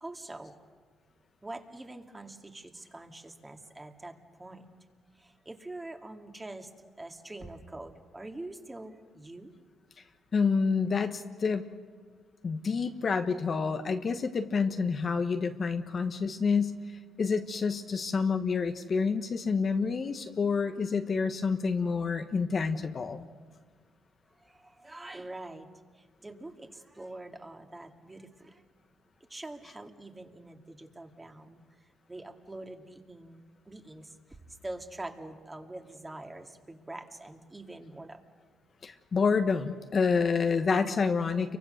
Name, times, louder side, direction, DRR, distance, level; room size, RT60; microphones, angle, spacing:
voice 1, 0.0-0.6 1.4-4.7 5.2-6.7 7.0-9.5 24.4-25.7 26.0-28.6 29.3-31.6 32.1-34.1 34.6-38.2, right 2 dB, 15° right, 4 dB, 2.4 m, -44 dB
voice 2, 10.3-11.7 12.4-16.8 17.2-23.3 38.8-41.6, left 5 dB, 45° left, 7 dB, 1.3 m, -28 dB
29.5 x 24.0 x 6.6 m, 1.5 s
cardioid pair, 90°, 0 cm